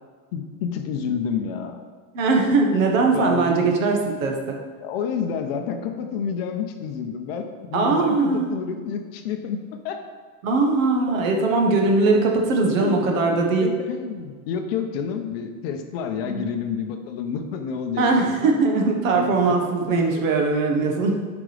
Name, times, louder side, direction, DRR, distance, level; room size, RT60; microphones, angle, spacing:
voice 1, 0.3-1.8 3.1-3.7 4.8-10.1 11.0-11.1 12.8-13.0 13.6-18.3 19.1-19.6 19.9-20.2, left 7 dB, 45° left, 5 dB, 0.7 m, -29 dB
voice 2, 2.1-4.6 7.7-8.5 10.4-13.7 16.2-16.4 18.0-21.2, right 3 dB, 70° right, 1 dB, 1.4 m, -20 dB
8.4 x 5.1 x 3.3 m, 1.5 s
supercardioid pair, 165°, 42 cm